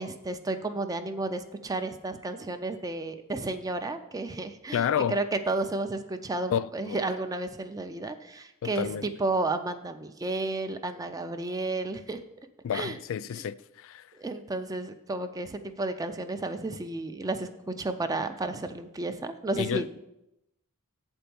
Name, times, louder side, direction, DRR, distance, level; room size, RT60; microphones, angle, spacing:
voice 1, 0.0-12.2 12.7-13.0 14.2-19.8, right 2 dB, 15° right, 0.4 m, -32 dB
voice 2, 4.7-5.2 6.5-7.0 8.6-9.1 12.6-14.1 19.6-19.9, left 8 dB, 60° left, 0.3 m, -30 dB
7.6 x 4.5 x 6.9 m
head